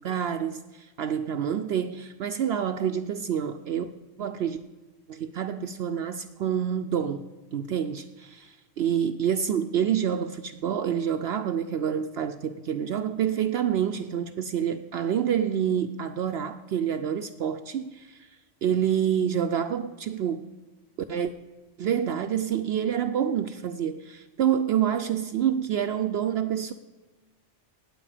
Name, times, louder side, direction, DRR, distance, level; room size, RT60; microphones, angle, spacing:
voice 1, 0.0-3.9 4.2-4.6 5.1-18.2 18.6-20.5 21.1-21.3 21.8-26.7, right 9 dB, 65° right, 0.8 m, -27 dB
18.5 x 8.0 x 4.9 m
omnidirectional pair, 1.3 m